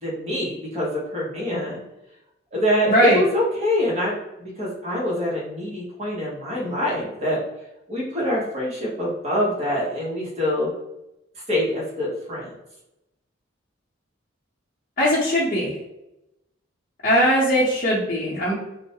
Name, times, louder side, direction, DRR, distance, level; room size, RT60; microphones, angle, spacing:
voice 1, 0.0-1.8 2.5-7.4 7.9-10.7 11.5-12.5, left 1 dB, 35° right, -5 dB, 0.8 m, -25 dB
voice 2, 2.9-3.2 15.0-15.7 17.0-18.5, equal, 45° left, -11 dB, 0.7 m, -20 dB
2.3 x 2.0 x 2.8 m, 0.90 s
head